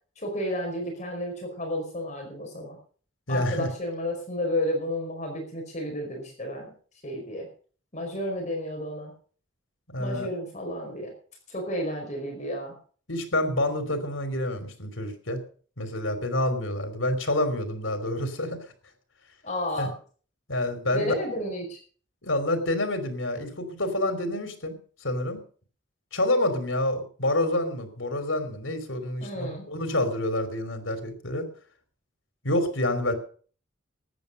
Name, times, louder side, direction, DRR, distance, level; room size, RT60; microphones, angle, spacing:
voice 1, 0.2-2.8 3.3-6.7 7.0-7.5 7.9-9.1 10.0-11.1 11.5-12.8 19.4-19.9 20.9-21.8 29.2-29.6, left 1 dB, 40° left, 1 dB, 4.8 m, -31 dB
voice 2, 3.3-3.7 9.9-10.3 13.1-15.4 15.8-18.6 19.8-19.9 20.5-21.1 22.2-25.4 26.1-31.5 32.4-33.1, left 1 dB, 85° left, 8 dB, 3.3 m, -28 dB
14.0 x 9.7 x 6.7 m, 0.43 s
head